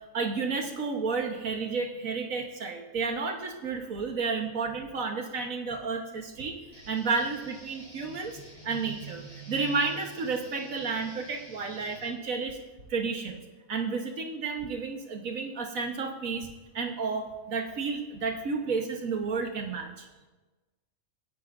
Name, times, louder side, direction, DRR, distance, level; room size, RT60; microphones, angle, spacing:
voice 1, 0.1-12.6 12.9-13.4 13.7-16.5 16.7-20.1, right 4 dB, 75° right, 3 dB, 1.6 m, -31 dB
sound 1, 6.7-12.1, left 1 dB, 45° left, 5.5 m, -51 dB
25.5 x 10.5 x 2.6 m, 1.2 s
omnidirectional pair, 1.4 m